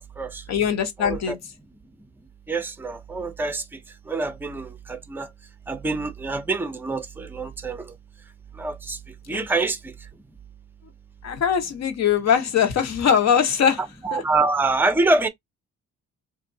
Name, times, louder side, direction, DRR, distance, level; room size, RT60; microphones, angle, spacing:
voice 1, 0.5-1.4 9.3-9.5 11.2-13.8 14.1-14.2, left 8 dB, 60° left, 1.1 m, -21 dB
voice 2, 1.0-1.4 2.5-3.8 4.1-5.3 5.7-7.9 8.5-9.0 9.3-9.9 13.8-15.3, right 3 dB, 5° right, 0.6 m, -26 dB
3.1 x 2.6 x 2.7 m
cardioid pair, 90°, 30 cm